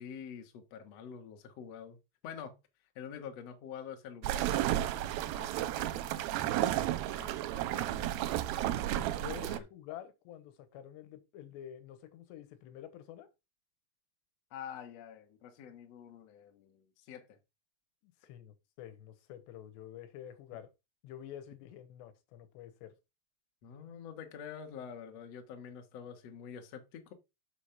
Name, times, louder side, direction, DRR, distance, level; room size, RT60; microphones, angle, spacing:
voice 1, 0.0-2.0 2.2-2.6 2.9-8.4 9.4-9.6 14.5-17.4 23.6-27.1, left 7 dB, 70° left, 1.5 m, -47 dB
sound 1, 4.2-9.6, right 13 dB, 85° right, 2.2 m, -32 dB
voice 2, 9.1-13.3 18.0-20.7 21.0-22.9, left 11 dB, 90° left, 3.2 m, -48 dB
7.2 x 4.9 x 5.7 m
omnidirectional pair, 4.9 m